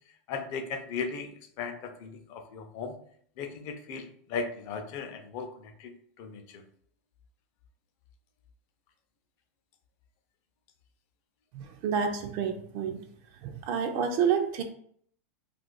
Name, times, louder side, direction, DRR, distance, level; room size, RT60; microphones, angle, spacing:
voice 1, 0.3-3.0 3.4-6.6, left 5 dB, 40° left, 6 dB, 0.5 m, -37 dB
voice 2, 11.5-13.0 13.4-14.6, right 7 dB, 45° right, 5 dB, 0.4 m, -29 dB
2.5 x 2.4 x 3.9 m, 0.63 s
supercardioid pair, 155°, 8 cm